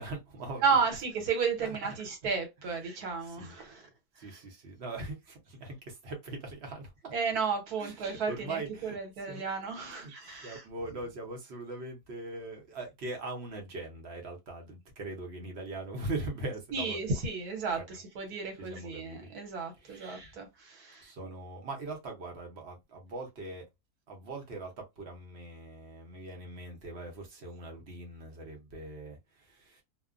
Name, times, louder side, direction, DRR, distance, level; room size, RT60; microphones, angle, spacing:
voice 1, 0.0-0.6 1.6-1.8 3.2-3.5 4.2-7.1 7.8-9.0 9.3-9.4 9.9-17.0 17.7-17.8 18.6-19.3 19.8-20.3 21.0-23.7 24.1-29.8, right 2 dB, 50° right, 0.9 m, -41 dB
voice 2, 0.6-3.9 4.3-4.4 7.1-10.6 16.7-21.1, right 5 dB, 70° right, 1.4 m, -33 dB
2.8 x 2.1 x 2.4 m
omnidirectional pair, 1.7 m